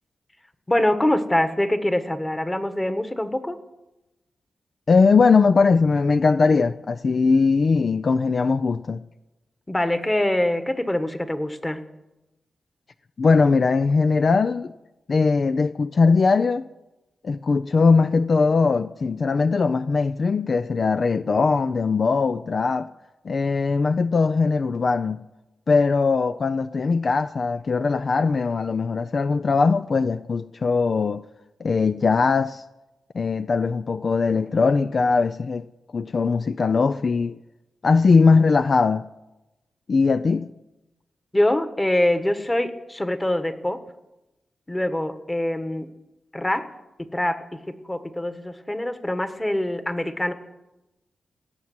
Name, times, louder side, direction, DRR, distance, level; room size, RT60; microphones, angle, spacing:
voice 1, 0.7-3.6 9.7-11.8 41.3-43.8 44.7-45.9 46.3-46.7 47.0-50.3, left 1 dB, 15° left, 1.4 m, -24 dB
voice 2, 4.9-9.0 13.2-14.7 15.1-16.7 17.2-22.9 23.2-25.2 25.7-31.2 31.6-32.6 33.1-35.6 35.9-37.4 37.8-39.0 39.9-40.5, left 4 dB, 55° left, 0.4 m, -20 dB
17.0 x 7.3 x 9.5 m
cardioid pair, 65°, 0 cm